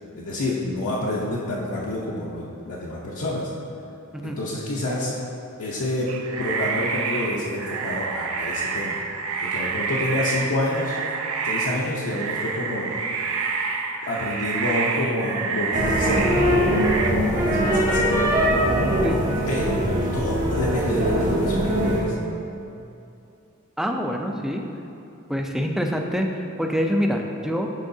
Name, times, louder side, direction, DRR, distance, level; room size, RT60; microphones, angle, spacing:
voice 1, 0.1-3.5 4.2-5.1 5.6-6.1 6.4-9.0 9.4-11.0 11.4-12.9 14.0-18.4 19.5-19.8 20.1-22.1, left 1 dB, 70° left, -6 dB, 0.7 m, -28 dB
sound 1, 6.1-17.1, right 5 dB, 70° right, 0.6 m, -28 dB
sound 2, 15.7-22.0, equal, 35° right, 1.2 m, -21 dB
voice 2, 23.8-24.6 25.3-27.7, equal, ahead, 2 dB, 0.4 m, -25 dB
10.5 x 4.6 x 2.7 m, 2.7 s
head